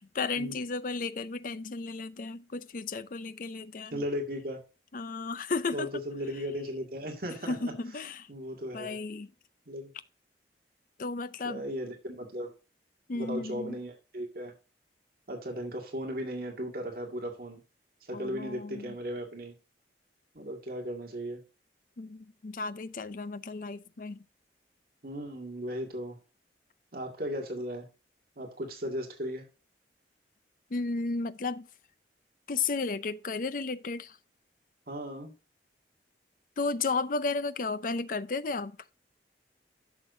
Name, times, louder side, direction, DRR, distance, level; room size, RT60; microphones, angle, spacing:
voice 1, 0.0-4.0 4.9-5.9 7.4-8.3 8.7-9.3 11.0-11.6 13.1-13.8 18.1-18.9 22.0-24.2 30.7-31.7 32.5-34.2 36.6-38.8, left 3 dB, 50° left, 0.5 m, -33 dB
voice 2, 3.9-4.6 5.7-7.7 8.3-9.0 9.7-9.9 11.4-12.5 13.1-14.5 15.3-17.6 18.0-19.5 20.3-21.4 25.0-26.2 26.9-27.9 28.4-29.4 34.9-35.3, equal, 55° right, 2.0 m, -36 dB
11.5 x 6.5 x 2.7 m
head